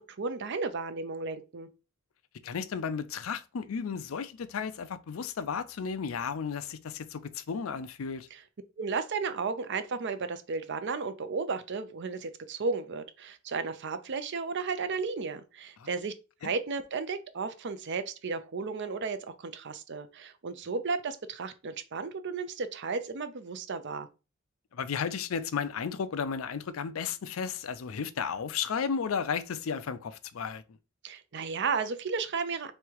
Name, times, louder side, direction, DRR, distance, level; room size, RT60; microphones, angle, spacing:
voice 1, 0.1-1.7 8.3-8.4 8.8-16.1 16.4-24.1 31.0-32.7, right 4 dB, 60° right, 0.6 m, -34 dB
voice 2, 2.4-8.3 15.8-15.9 24.7-30.6, left 6 dB, 85° left, 0.5 m, -33 dB
3.5 x 3.2 x 4.6 m
head